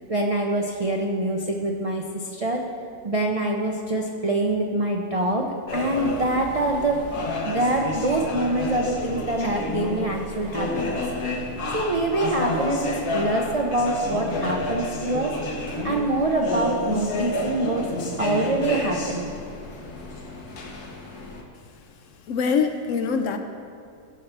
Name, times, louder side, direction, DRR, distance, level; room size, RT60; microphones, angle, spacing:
voice 1, 0.1-2.7 3.0-7.1 7.4-11.0 11.4-11.5 11.7-15.4 15.8-17.9 18.2-19.3, right 2 dB, 60° right, 0 dB, 0.3 m, -25 dB
sound 1, 5.7-21.4, left 2 dB, 85° left, 1.6 m, -30 dB
voice 2, 22.3-23.4, left 5 dB, 65° left, 6 dB, 0.8 m, -23 dB
15.0 x 5.9 x 3.3 m, 2.4 s
omnidirectional pair, 1.6 m